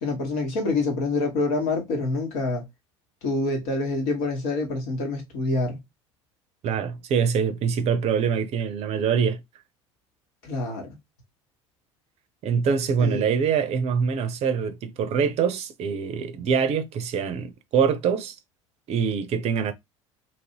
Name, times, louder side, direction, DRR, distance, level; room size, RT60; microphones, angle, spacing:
voice 1, 0.0-2.6 3.2-5.8 10.4-10.9 13.0-13.3, left 2 dB, 65° left, 1.4 m, -26 dB
voice 2, 6.6-9.4 12.4-18.3 18.9-19.7, right 6 dB, 40° right, 0.6 m, -24 dB
3.0 x 2.6 x 2.8 m
figure-of-eight pair, 65°, 16 cm